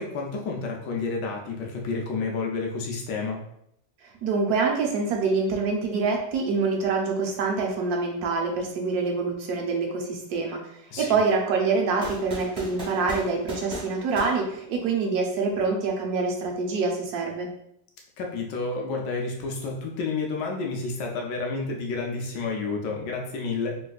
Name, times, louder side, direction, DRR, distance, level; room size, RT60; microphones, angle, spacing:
voice 1, 0.0-3.4 10.9-11.2 18.2-23.8, left 4 dB, 80° left, 0 dB, 1.2 m, -30 dB
voice 2, 4.2-10.6 11.0-17.5, right 4 dB, 70° right, 1 dB, 1.0 m, -25 dB
sound 1, 12.0-15.2, equal, 25° right, 1.2 m, -38 dB
3.3 x 3.0 x 2.3 m, 0.74 s
omnidirectional pair, 1.9 m